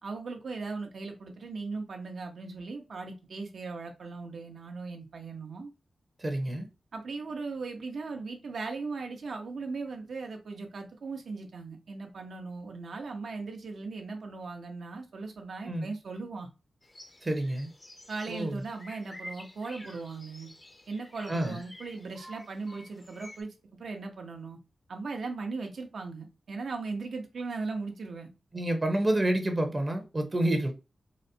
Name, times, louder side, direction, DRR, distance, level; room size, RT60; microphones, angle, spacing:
voice 1, 0.0-5.7 6.9-16.5 18.1-20.5 20.9-24.6 24.9-28.3, right 4 dB, 75° right, 0.8 m, -38 dB
voice 2, 6.2-6.7 15.7-15.9 17.2-17.7 18.3-18.6 21.3-21.6 28.5-30.7, right 1 dB, 30° right, 0.7 m, -28 dB
sound 1, 16.8-23.4, left 1 dB, 25° left, 0.6 m, -50 dB
4.0 x 2.1 x 2.6 m
wide cardioid pair, 90°, 0 cm